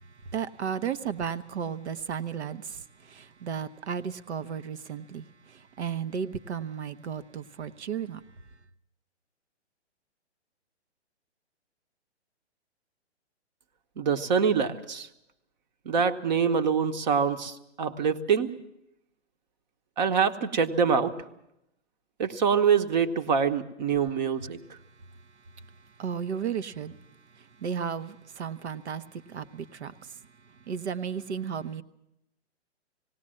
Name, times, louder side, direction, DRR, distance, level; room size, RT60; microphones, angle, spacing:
voice 1, 0.0-8.2 25.5-27.0 27.3-31.8, right 7 dB, 70° right, 1.1 m, -34 dB
voice 2, 14.0-15.1 15.8-18.5 20.0-21.1 22.2-24.6, right 6 dB, 40° right, 1.2 m, -25 dB
19.0 x 18.0 x 7.7 m
hypercardioid pair, 165°, 34 cm